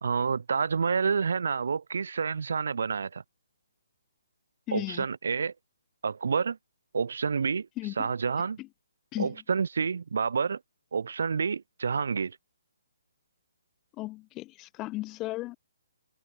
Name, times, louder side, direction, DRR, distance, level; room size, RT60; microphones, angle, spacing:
voice 1, 0.0-3.2 4.7-5.5 6.0-6.6 6.9-7.7 8.0-8.6 9.2-10.6 10.9-12.4, right 5 dB, 70° right, 1.6 m, -28 dB
voice 2, 4.7-5.0 7.8-8.1 8.6-8.7 9.1-9.4 14.0-15.6, left 18 dB, 15° left, 2.0 m, -35 dB
hypercardioid pair, 165°, 0 cm